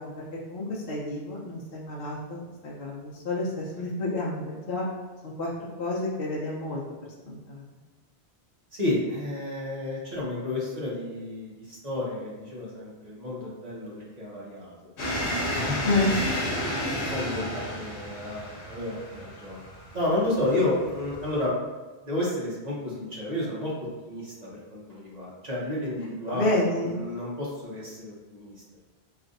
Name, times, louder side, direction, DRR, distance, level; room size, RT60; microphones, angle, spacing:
voice 1, 0.0-4.9 5.2-6.8 7.3-7.6 15.8-16.1 26.3-26.9, left 2 dB, 60° left, -5 dB, 0.8 m, -30 dB
voice 2, 8.7-15.8 16.1-16.2 16.6-19.6 19.9-21.5 22.0-23.7 24.0-28.5, left 1 dB, 40° right, -6 dB, 1.2 m, -31 dB
sound 1, 15.0-21.4, equal, 90° left, 1.1 m, -32 dB
3.3 x 2.4 x 3.9 m, 1.3 s
omnidirectional pair, 1.1 m